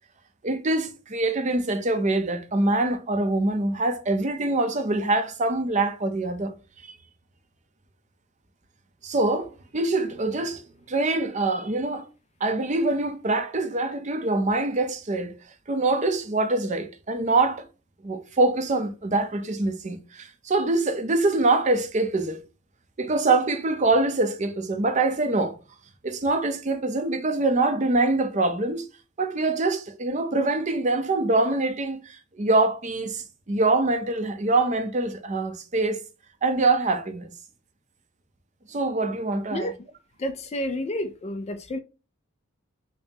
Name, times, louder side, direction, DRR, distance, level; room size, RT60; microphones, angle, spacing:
voice 1, 0.4-6.5 9.0-10.6 10.9-12.1 12.4-15.3 15.7-17.6 18.0-22.4 23.0-25.6 26.0-28.8 29.2-36.0 36.4-37.3 38.7-39.7, right 2 dB, 35° right, 0.5 m, -24 dB
voice 2, 40.2-41.8, left 1 dB, 30° left, 0.3 m, -30 dB
5.1 x 2.1 x 2.8 m
head